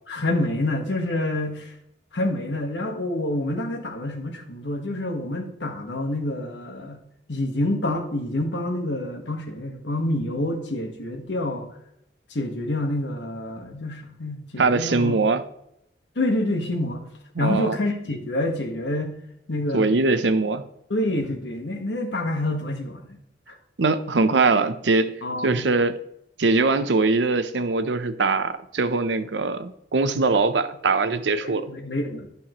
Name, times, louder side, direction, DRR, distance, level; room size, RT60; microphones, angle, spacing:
voice 1, 0.1-1.7 2.1-7.0 7.3-11.7 12.3-15.1 16.1-17.1 17.4-19.1 19.5-19.9 20.9-23.2 23.5-23.6 25.2-25.7 31.4-32.3, left 1 dB, 80° left, 4 dB, 1.4 m, -27 dB
voice 2, 14.6-15.4 17.4-17.8 19.7-20.6 23.8-25.1 25.4-26.0 26.4-31.6, right 3 dB, 85° right, 11 dB, 0.7 m, -22 dB
11.5 x 5.7 x 3.0 m, 0.77 s
head